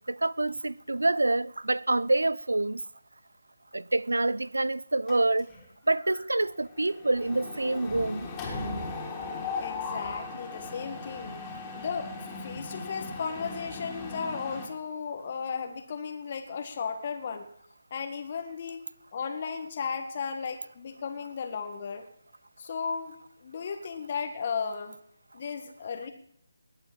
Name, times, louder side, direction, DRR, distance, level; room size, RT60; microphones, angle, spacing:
voice 1, 0.0-2.8 3.7-5.5 5.9-8.3, right 2 dB, 75° right, 0.6 m, -27 dB
Mechanisms, 5.1-5.7 6.0-6.2 6.5-14.7, left 3 dB, 15° left, 3.5 m, -38 dB
voice 2, 9.3-11.4 11.7-12.1 12.4-17.5 17.9-18.8 19.1-22.1 22.6-23.1 23.4-25.0 25.3-26.1, left 6 dB, 40° left, 1.8 m, -35 dB
19.5 x 8.9 x 7.6 m
figure-of-eight pair, 150°, 0 cm